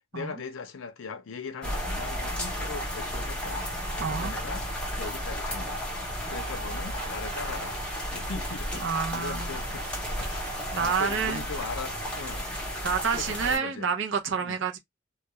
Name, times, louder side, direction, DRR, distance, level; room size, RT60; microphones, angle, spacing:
voice 1, 0.1-3.7 4.1-4.7 5.0-5.8 6.2-7.8 8.1-9.9 10.1-10.5 10.8-12.5 13.2-13.9 14.4-14.6, left 4 dB, 75° left, 0.5 m, -39 dB
sound 1, 1.6-13.6, equal, 5° left, 0.6 m, -33 dB
voice 2, 4.0-4.3 8.8-9.5 10.7-11.4 12.8-14.8, right 6 dB, 70° right, 0.6 m, -28 dB
Rain, 6.2-12.8, right 2 dB, 25° right, 1.1 m, -46 dB
2.2 x 2.2 x 2.9 m
head